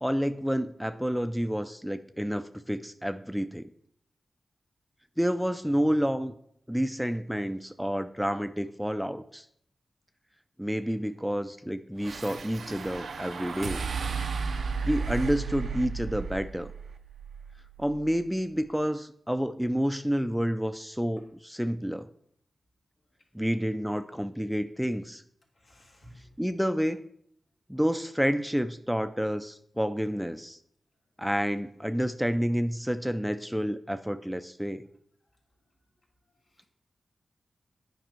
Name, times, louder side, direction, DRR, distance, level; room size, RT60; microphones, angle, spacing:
voice 1, 0.0-3.7 5.2-6.3 6.7-9.5 10.6-13.8 14.8-16.7 17.8-22.1 23.3-25.2 26.4-27.0 27.7-30.6 31.2-34.9, equal, ahead, 0.4 m, -29 dB
sound 1, 12.0-18.4, right 5 dB, 85° right, 0.5 m, -34 dB
voice 2, 25.5-26.4 36.3-36.7, equal, 70° left, 2.3 m, -55 dB
9.2 x 5.3 x 4.5 m
cardioid pair, 60°, 0 cm